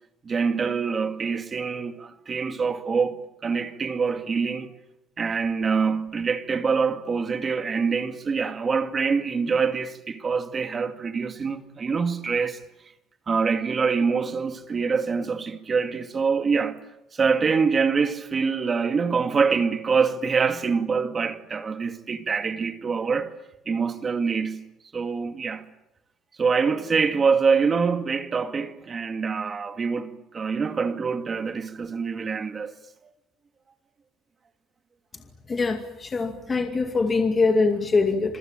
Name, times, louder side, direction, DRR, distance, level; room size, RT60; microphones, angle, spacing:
voice 1, 0.2-4.7 5.2-12.6 13.3-16.8 17.1-23.3 23.7-24.6 24.9-25.6 26.4-32.7, right 5 dB, 25° right, 2.2 m, -25 dB
voice 2, 35.5-38.4, left 4 dB, 20° left, 2.4 m, -23 dB
27.0 x 23.5 x 9.1 m
cardioid pair, 140°, 0 cm